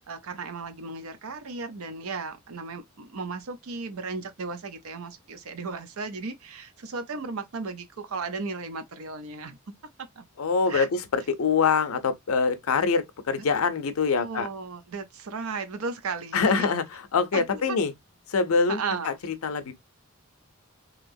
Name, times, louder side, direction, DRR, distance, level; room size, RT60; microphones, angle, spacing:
voice 1, 0.1-9.6 10.0-10.2 10.7-10.9 13.4-13.5 14.2-16.7 17.3-17.8 18.7-19.2, right 4 dB, 85° right, 0.6 m, -35 dB
voice 2, 10.4-14.5 16.3-17.9 18.3-18.8 19.0-19.7, left 5 dB, 85° left, 0.6 m, -24 dB
2.9 x 2.9 x 2.6 m
head